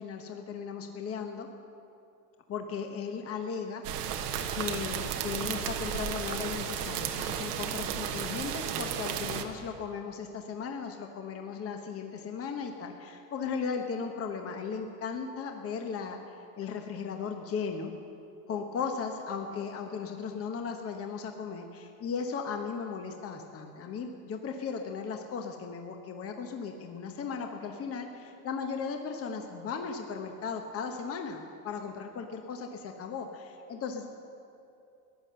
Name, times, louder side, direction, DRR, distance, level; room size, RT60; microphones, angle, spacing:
voice 1, 0.0-1.5 2.5-3.8 4.5-17.9 18.5-34.1, left 6 dB, 30° left, 4 dB, 1.1 m, -36 dB
sound 1, 3.8-9.4, right 8 dB, 80° right, 1.3 m, -33 dB
15.5 x 10.0 x 6.8 m, 2.7 s
supercardioid pair, 105°, 46 cm